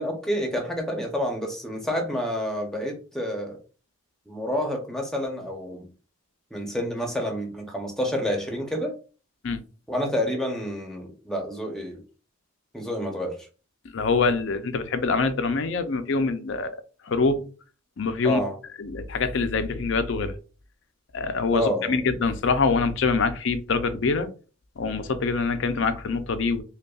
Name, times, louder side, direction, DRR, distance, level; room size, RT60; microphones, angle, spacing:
voice 1, 0.0-3.6 4.3-5.9 6.5-8.9 9.9-12.0 12.7-13.4 18.2-18.6 21.5-22.1, equal, ahead, 0.8 m, -29 dB
voice 2, 13.9-16.8 17.1-17.5 18.0-18.4 18.8-20.3 21.1-24.3 24.8-26.6, left 4 dB, 60° left, 0.5 m, -24 dB
5.2 x 2.3 x 2.3 m
head